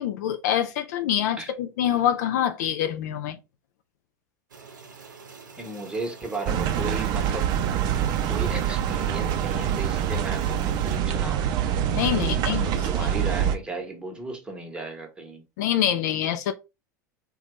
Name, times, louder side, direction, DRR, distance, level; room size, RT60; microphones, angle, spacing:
voice 1, 0.0-3.4 11.9-12.9 15.6-16.5, left 10 dB, 65° left, 0.4 m, -25 dB
sound 1, 4.5-11.0, right 5 dB, 90° right, 0.6 m, -46 dB
voice 2, 5.6-7.5 8.3-11.8 12.2-12.6 12.9-15.4, right 2 dB, 10° right, 1.0 m, -35 dB
sound 2, 6.5-13.6, right 9 dB, 45° right, 0.4 m, -25 dB
2.7 x 2.2 x 3.0 m
hypercardioid pair, 90°, 10 cm